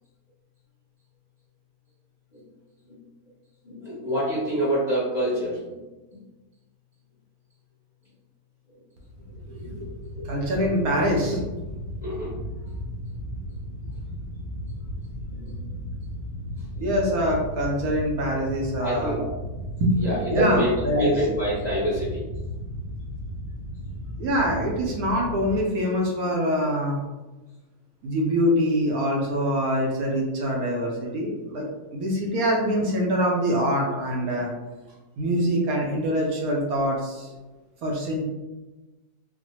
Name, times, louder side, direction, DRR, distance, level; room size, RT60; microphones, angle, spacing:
voice 1, 3.6-5.7 10.1-10.3 12.0-12.3 15.3-15.5 16.7-16.9 18.8-19.2 20.0-22.2, equal, 30° left, -9 dB, 0.9 m, -26 dB
sound 1, 9.1-25.6, equal, 50° right, 1.0 m, -35 dB
voice 2, 9.5-9.9 10.2-11.4 16.8-19.2 19.8-20.0 20.3-21.1 24.2-27.0 28.0-34.5 35.2-37.3 37.8-38.3, equal, 70° right, -1 dB, 1.0 m, -24 dB
4.0 x 2.1 x 2.9 m, 1.1 s
omnidirectional pair, 1.9 m